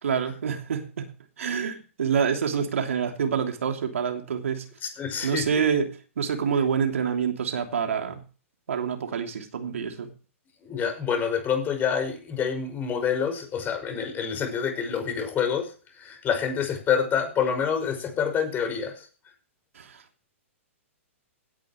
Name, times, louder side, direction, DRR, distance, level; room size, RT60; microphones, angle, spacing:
voice 1, 0.0-1.1 1.4-4.6 5.2-8.2 8.7-10.1 19.7-20.0, right 7 dB, 70° right, 4 dB, 3.0 m, -27 dB
voice 2, 4.8-5.6 10.6-19.1, left 7 dB, 25° left, 6 dB, 5.6 m, -27 dB
17.0 x 10.5 x 3.1 m, 0.37 s
hypercardioid pair, 115°, 7 cm